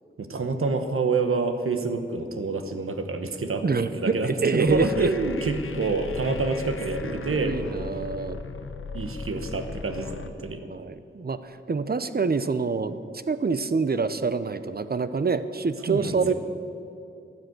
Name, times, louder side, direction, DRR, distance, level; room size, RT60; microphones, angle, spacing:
voice 1, 0.2-7.9 8.9-10.6 15.9-16.3, right 3 dB, 85° right, 7 dB, 1.1 m, -27 dB
voice 2, 3.6-5.1 7.0-8.4 10.6-13.0 13.3-16.3, right 4 dB, 45° right, 13 dB, 0.7 m, -26 dB
sound 1, 4.7-10.3, left 4 dB, 75° left, 0.8 m, -37 dB
12.5 x 9.9 x 7.9 m, 2.7 s
wide cardioid pair, 55°, 21 cm